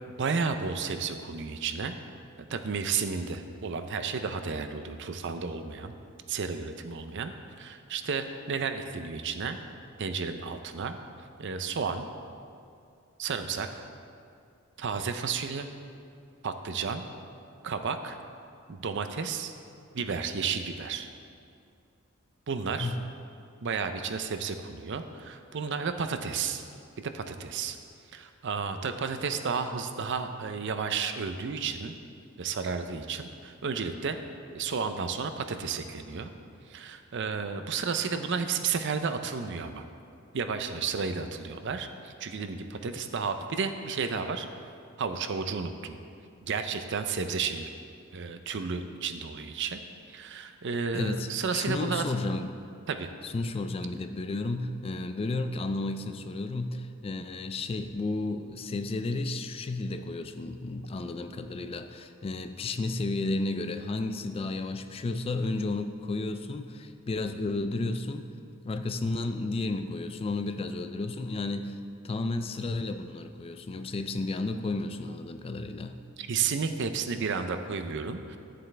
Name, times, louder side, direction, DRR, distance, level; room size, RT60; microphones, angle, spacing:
voice 1, 0.2-1.9 2.5-6.0 6.3-9.6 10.0-11.0 11.4-12.1 13.2-13.8 14.8-15.7 16.4-17.1 17.6-18.2 18.7-19.5 19.9-21.1 22.5-22.9 23.6-26.6 27.0-27.8 28.1-31.9 32.4-34.2 34.5-36.3 36.7-39.8 40.3-44.5 45.0-46.0 46.5-47.7 48.1-49.8 50.1-52.0 52.9-53.1 76.2-78.4, right 5 dB, 60° right, 8 dB, 0.5 m, -32 dB
voice 2, 50.9-52.5 53.2-68.3 68.6-71.8 72.0-75.9, left 2 dB, 30° left, 9 dB, 0.3 m, -32 dB
11.0 x 7.5 x 3.3 m, 2.4 s
head